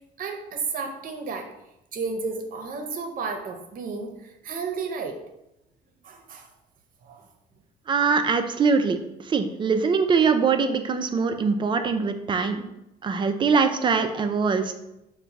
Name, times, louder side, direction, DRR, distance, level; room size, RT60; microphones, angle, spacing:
voice 1, 0.2-1.5 1.9-5.2 6.0-6.5 7.0-7.3, right 4 dB, 55° right, 4 dB, 0.7 m, -32 dB
voice 2, 7.9-9.0 9.3-12.7 13.0-14.7, right 5 dB, 30° right, 8 dB, 0.4 m, -22 dB
4.5 x 2.2 x 4.0 m, 0.88 s
cardioid pair, 110°, 17 cm